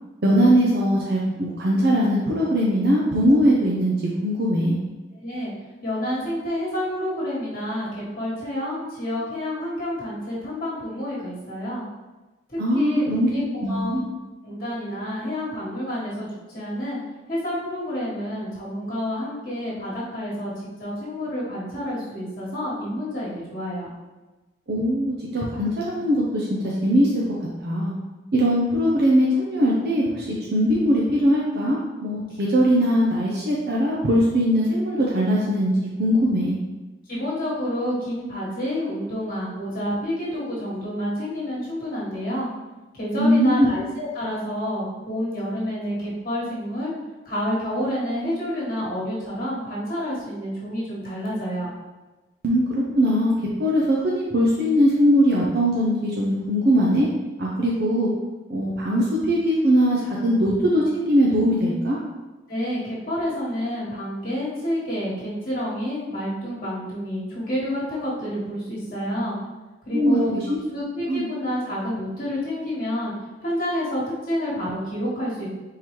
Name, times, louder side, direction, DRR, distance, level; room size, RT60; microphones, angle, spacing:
voice 1, 0.2-3.9 4.2-4.8 12.6-13.3 13.6-14.0 24.7-26.5 26.8-27.1 27.6-27.9 28.3-30.3 30.5-35.7 36.0-36.6 43.2-43.7 52.4-52.6 53.0-53.3 53.6-57.1 57.4-58.1 58.5-62.0 69.9-70.6 71.1-71.2, equal, 60° right, -4 dB, 0.6 m, -20 dB
voice 2, 5.2-5.5 5.8-11.9 12.5-14.0 14.4-17.0 17.3-20.5 20.8-23.9 37.1-42.5 42.9-46.9 47.2-51.7 62.5-69.3 69.8-70.3 70.7-73.1 73.4-75.5, equal, 55° left, -8 dB, 1.4 m, -29 dB
4.5 x 3.7 x 3.1 m, 1.2 s
head